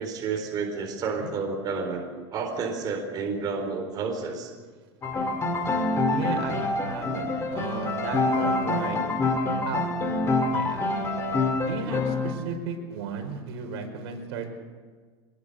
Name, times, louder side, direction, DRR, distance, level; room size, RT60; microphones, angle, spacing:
voice 1, 0.0-2.0 2.3-4.5, right 4 dB, 30° right, 2 dB, 4.2 m, -30 dB
Piano, 5.0-12.3, left 2 dB, 20° left, 2.9 m, -26 dB
voice 2, 6.1-9.0 9.7-9.8 10.5-11.1 11.6-14.6, right 5 dB, 70° right, 4 dB, 5.4 m, -34 dB
24.0 x 22.0 x 6.8 m, 1.5 s
supercardioid pair, 155°, 14 cm